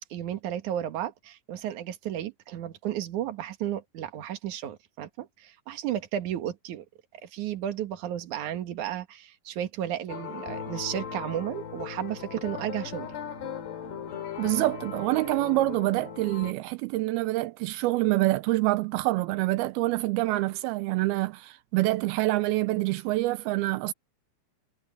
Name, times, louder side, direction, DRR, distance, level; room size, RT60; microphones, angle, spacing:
voice 1, 0.1-6.8 7.2-13.2, right 11 dB, 55° right, 2.4 m, -33 dB
sound 1, 10.1-16.5, left 8 dB, 65° left, 5.0 m, -38 dB
voice 2, 14.4-23.9, right 19 dB, 90° right, 2.1 m, -26 dB
omnidirectional pair, 5.2 m